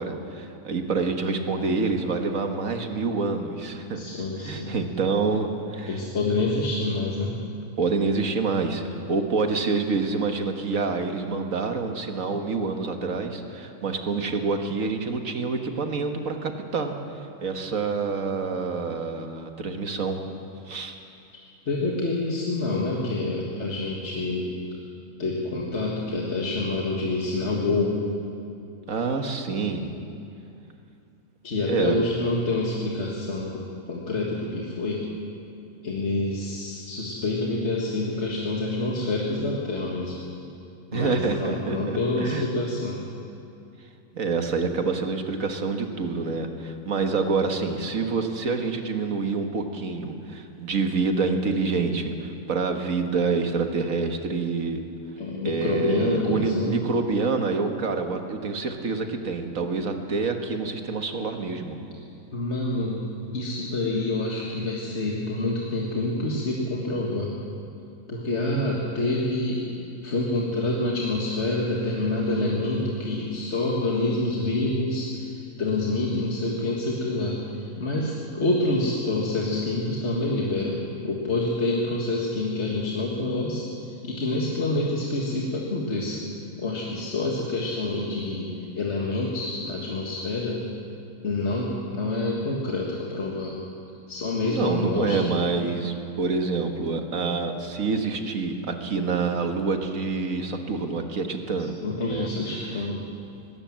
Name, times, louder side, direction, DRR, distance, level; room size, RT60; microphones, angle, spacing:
voice 1, 0.0-4.0 4.4-6.0 7.8-8.8 9.1-17.0 17.4-20.2 20.7-21.0 28.9-29.9 31.7-32.0 40.9-42.5 44.1-54.8 55.4-61.8 94.4-101.8 102.1-102.3 102.5-102.9, right 4 dB, 60° right, 5 dB, 1.8 m, -27 dB
voice 2, 3.9-4.7 5.9-7.4 21.7-24.5 25.2-28.0 31.4-35.0 35.8-40.2 40.9-43.0 55.2-56.8 62.3-67.3 68.1-69.6 70.0-80.8 81.0-86.2 86.6-90.7 91.2-93.5 94.1-95.4 101.8-103.0, left 2 dB, 45° left, -3 dB, 2.1 m, -27 dB
20.5 x 17.5 x 7.5 m, 2.6 s
omnidirectional pair, 1.6 m